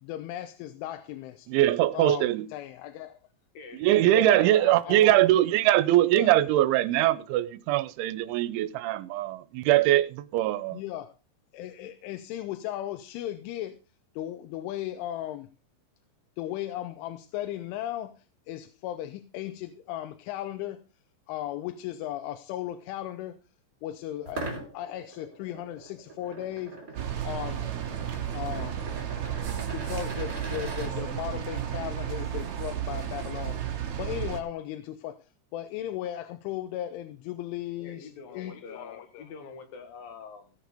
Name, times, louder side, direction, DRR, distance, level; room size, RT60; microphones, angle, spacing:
voice 1, 0.0-1.5 1.9-3.2 4.1-5.2 6.1-6.3 10.7-11.1 11.5-13.8 14.1-15.5 16.4-18.1 18.5-20.8 21.3-23.4 23.8-26.8 27.2-27.7 28.3-28.8 29.6-35.2 35.5-39.2, left 12 dB, 90° left, 3.2 m, -36 dB
voice 2, 1.5-2.5 3.8-10.8, right 14 dB, 85° right, 3.1 m, -22 dB
voice 3, 3.5-5.2 37.8-40.5, left 5 dB, 60° left, 2.9 m, -45 dB
sound 1, 24.2-30.9, right 2 dB, 20° right, 2.9 m, -41 dB
sound 2, 27.0-34.4, right 10 dB, 55° right, 2.3 m, -33 dB
16.5 x 6.7 x 5.1 m
omnidirectional pair, 5.4 m